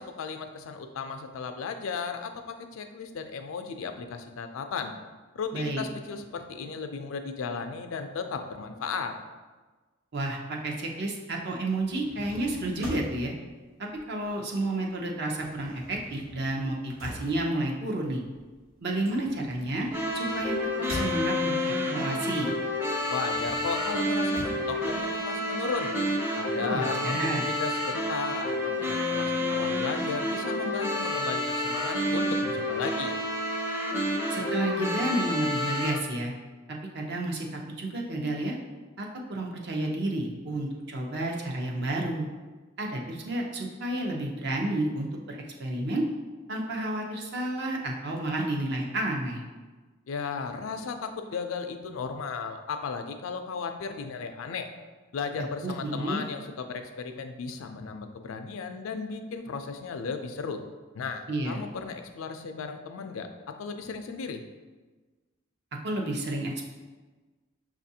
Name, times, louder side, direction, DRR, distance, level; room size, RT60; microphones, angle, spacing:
voice 1, 0.0-4.9 5.3-9.2 23.1-25.9 26.3-33.2 50.1-54.7 55.1-60.6 60.9-64.4, left 5 dB, 75° left, 7 dB, 0.4 m, -35 dB
voice 2, 5.5-5.8 10.1-13.3 13.8-18.2 18.8-19.9 20.1-22.5 26.6-27.4 34.3-36.3 36.9-38.6 39.0-42.3 42.8-46.0 46.5-49.4 55.6-56.2 61.3-61.6 65.8-66.6, right 1 dB, 55° right, 0 dB, 0.6 m, -31 dB
sound 1, 11.9-14.6 14.9-21.7 22.2-25.7, left 1 dB, 85° right, 1.2 m, -43 dB
sound 2, 19.9-35.9, left 1 dB, 10° right, 0.5 m, -29 dB
6.0 x 2.5 x 2.7 m, 1.3 s
head